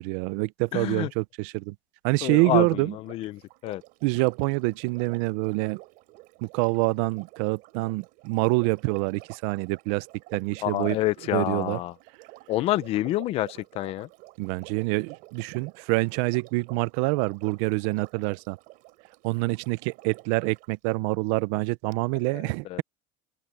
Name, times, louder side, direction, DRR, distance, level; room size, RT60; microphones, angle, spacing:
voice 1, 0.0-1.7 2.0-3.0 4.0-5.8 6.4-10.1 10.3-11.0 11.3-11.8 14.4-18.6 19.2-22.8, right 24 dB, 70° right, 0.6 m, -26 dB
voice 2, 0.7-1.1 2.2-3.8 10.6-11.9 12.5-14.1 22.3-22.4 22.7-22.8, left 16 dB, 35° left, 0.5 m, -28 dB
Sink (filling or washing), 2.9-20.7 21.9-22.0, right 22 dB, 55° right, 5.4 m, -50 dB
cardioid pair, 180°, 17 cm